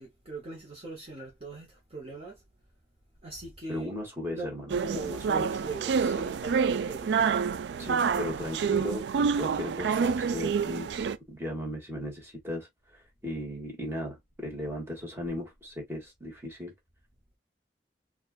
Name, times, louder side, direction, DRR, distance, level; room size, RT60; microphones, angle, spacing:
voice 1, 0.0-2.4 3.2-4.0 4.3-7.1, right 2 dB, 35° right, 1.0 m, -41 dB
voice 2, 3.7-5.5 7.8-10.9 11.3-12.7 13.2-16.7, left 1 dB, 15° right, 1.5 m, -37 dB
sound 1, 4.7-11.2, right 6 dB, 70° right, 0.3 m, -28 dB
4.3 x 2.4 x 2.4 m
head